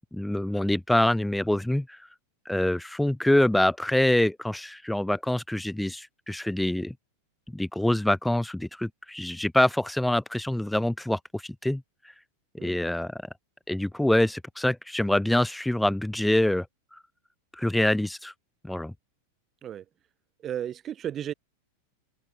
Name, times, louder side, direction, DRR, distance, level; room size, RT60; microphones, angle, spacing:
voice 1, 0.1-2.0 2.5-6.9 7.5-11.8 12.6-13.2 13.7-16.7 17.5-18.3 18.6-18.9, left 1 dB, 5° left, 0.8 m, -25 dB
voice 2, 20.4-21.3, right 10 dB, 25° right, 0.5 m, -34 dB
open air
figure-of-eight pair, 90°, 0 cm